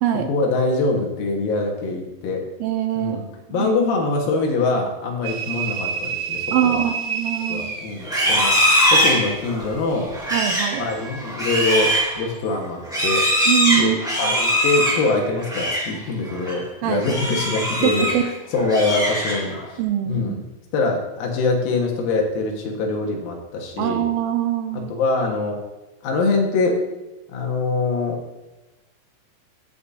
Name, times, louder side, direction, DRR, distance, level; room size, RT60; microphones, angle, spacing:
voice 1, 0.2-2.4 3.0-6.8 7.5-8.5 8.9-10.1 10.8-13.2 13.7-19.8 20.1-20.3 20.7-24.0 24.9-25.6 26.0-26.8 27.3-28.2, left 3 dB, 80° left, 1 dB, 2.9 m, -24 dB
voice 2, 2.6-3.2 3.5-3.7 6.5-7.8 10.3-10.9 13.5-14.4 16.8-17.0 17.8-18.2 19.8-20.4 23.8-25.0, right 10 dB, 80° right, 6 dB, 2.2 m, -23 dB
sound 1, 5.2-8.6, right 6 dB, 65° right, 2.2 m, -29 dB
Livestock farm animals working animals, 8.0-15.9 16.3-16.6 17.0-18.3 18.6-19.6, equal, ahead, 1.2 m, -22 dB
16.5 x 5.5 x 2.5 m, 1.1 s
omnidirectional pair, 4.3 m